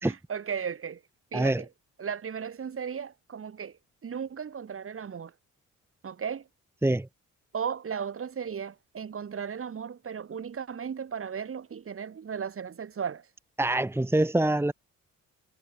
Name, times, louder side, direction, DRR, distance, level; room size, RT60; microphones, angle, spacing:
voice 1, 0.0-1.0 1.3-1.7 2.0-3.8 4.0-5.3 6.0-6.5 7.5-13.3, right 7 dB, 45° right, 4.5 m, -35 dB
voice 2, 13.6-14.7, right 1 dB, 10° right, 1.4 m, -25 dB
cardioid pair, 90°, 30 cm